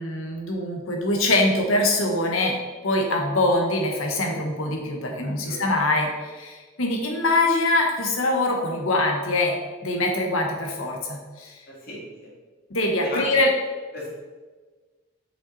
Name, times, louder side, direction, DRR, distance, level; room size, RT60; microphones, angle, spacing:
voice 1, 0.0-2.5 2.8-11.5 12.7-13.5, left 2 dB, 90° left, 1 dB, 1.3 m, -23 dB
voice 2, 5.4-5.8 11.7-12.3 13.0-13.4 13.9-14.1, left 1 dB, 45° left, -4 dB, 2.1 m, -36 dB
5.9 x 5.4 x 4.2 m, 1.4 s
head